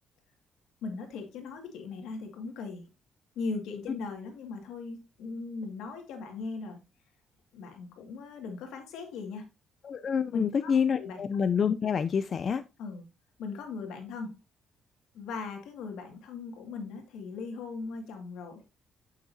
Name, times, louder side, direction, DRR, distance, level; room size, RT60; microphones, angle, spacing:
voice 1, 0.8-2.9 3.4-6.8 7.5-9.5 10.3-10.7 11.0-11.2 12.8-13.1 13.4-14.4 15.1-18.6, left 4 dB, 90° left, 2.0 m, -39 dB
voice 2, 9.8-12.6, left 7 dB, 50° left, 0.5 m, -27 dB
9.2 x 6.6 x 2.7 m
cardioid pair, 90°, 0 cm